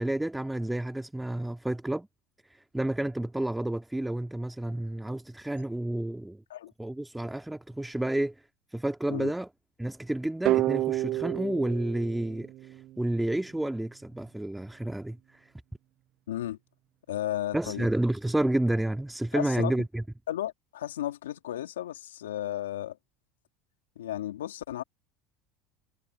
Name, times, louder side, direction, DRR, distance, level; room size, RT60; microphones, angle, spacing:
voice 1, 0.0-2.1 2.5-6.4 6.8-8.4 8.7-9.5 9.8-15.5 17.5-20.0, right 1 dB, 5° right, 2.1 m, -30 dB
sound 1, 10.5-13.3, right 15 dB, 55° right, 0.4 m, -29 dB
voice 2, 16.3-16.6 17.1-17.9 19.3-19.7 20.3-23.0 24.0-24.8, left 12 dB, 85° left, 2.6 m, -34 dB
hypercardioid pair, 85°, 0 cm